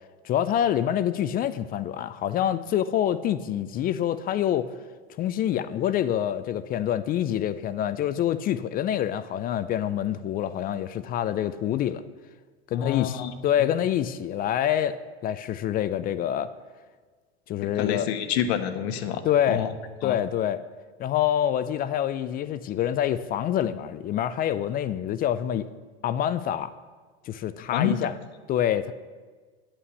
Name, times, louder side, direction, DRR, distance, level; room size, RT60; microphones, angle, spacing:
voice 1, 0.2-4.7 5.2-12.0 12.7-15.0 15.2-16.5 17.5-18.1 19.2-19.6 20.0-20.6 21.0-25.7 26.0-26.7 27.3-28.1 28.5-28.9, left 10 dB, 25° left, 14 dB, 0.4 m, -26 dB
voice 2, 12.7-13.3 17.7-19.2 19.5-19.7 20.0-20.2 27.7-27.9, left 9 dB, 65° left, 9 dB, 1.1 m, -27 dB
9.5 x 5.9 x 7.0 m, 1.4 s
hypercardioid pair, 105°, 33 cm